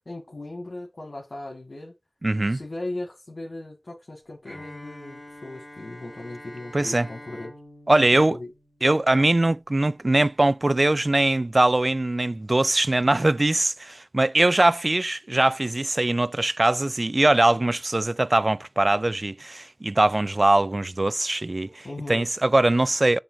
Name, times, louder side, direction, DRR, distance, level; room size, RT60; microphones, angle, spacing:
voice 1, 0.1-1.9 2.5-7.5 8.1-8.5 21.8-22.3, left 2 dB, 70° left, 2.0 m, -37 dB
voice 2, 2.2-2.6 6.7-7.1 7.9-8.4 8.8-23.2, right 2 dB, 45° right, 0.3 m, -21 dB
Bowed string instrument, 4.5-9.3, left 1 dB, 10° left, 2.7 m, -45 dB
7.3 x 3.3 x 6.3 m
wide cardioid pair, 55°, 0 cm